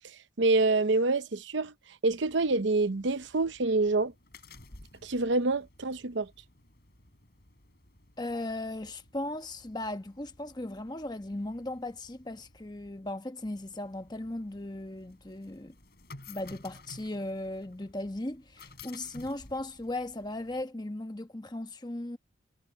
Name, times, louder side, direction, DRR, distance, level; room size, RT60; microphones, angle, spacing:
voice 1, 0.4-1.7 2.0-4.1 5.0-6.3, right 3 dB, 70° right, 0.8 m, -26 dB
sound 1, 2.1-20.6, left 3 dB, 55° left, 3.6 m, -55 dB
voice 2, 8.2-15.7 16.3-22.2, left 1 dB, 20° left, 1.0 m, -37 dB
head